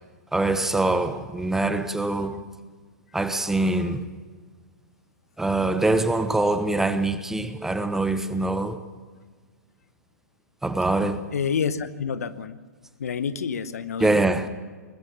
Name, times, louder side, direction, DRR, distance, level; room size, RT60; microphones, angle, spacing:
voice 1, 0.3-2.4 3.1-4.0 5.4-8.8 10.6-11.2 14.0-14.5, right 2 dB, 5° right, 1.1 m, -24 dB
voice 2, 11.3-12.6 13.0-14.1, left 6 dB, 60° left, 1.2 m, -28 dB
21.5 x 20.5 x 7.1 m
figure-of-eight pair, 115°, 9 cm